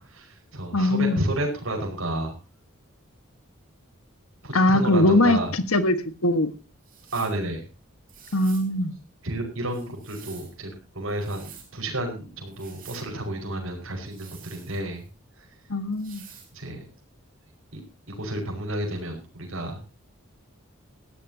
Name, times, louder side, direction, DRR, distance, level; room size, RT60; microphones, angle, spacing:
voice 1, 0.0-2.3 4.4-5.6 7.1-7.6 9.2-10.7 10.9-15.0 15.4-15.5 16.5-16.9 17.7-17.8 18.1-19.8, right 1 dB, 70° right, 2 dB, 5.3 m, -31 dB
voice 2, 0.7-1.2 4.5-6.5 8.3-8.9 15.7-16.2, left 1 dB, 85° left, 11 dB, 1.6 m, -21 dB
sound 1, 6.8-7.4 8.1-8.7 9.7-10.5 11.1-11.7 12.5-13.1 14.1-15.1 15.9-16.5, right 8 dB, 40° right, 5.3 m, -48 dB
19.5 x 15.5 x 2.8 m, 0.32 s
head